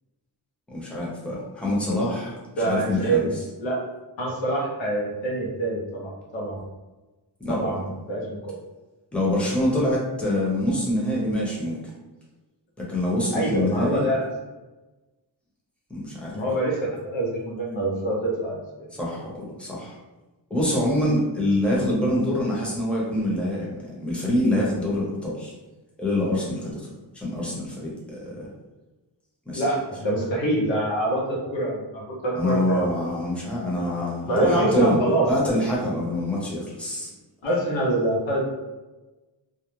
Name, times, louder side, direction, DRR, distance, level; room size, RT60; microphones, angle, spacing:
voice 1, 0.7-2.4 2.6-3.3 7.4-7.7 9.1-11.8 12.8-14.1 15.9-16.3 19.0-20.0 20.5-25.5 26.0-26.9 27.1-28.5 29.5-29.6 32.3-35.0 35.3-37.1, left 1 dB, 5° left, -5 dB, 0.7 m, -25 dB
voice 2, 2.6-3.3 3.6-3.8 4.2-6.6 7.5-8.6 13.3-14.3 16.3-18.9 29.5-33.0 34.2-35.3 37.4-38.5, right 1 dB, 85° left, -2 dB, 0.8 m, -25 dB
2.3 x 2.0 x 3.0 m, 1.1 s
cardioid pair, 85°, 45 cm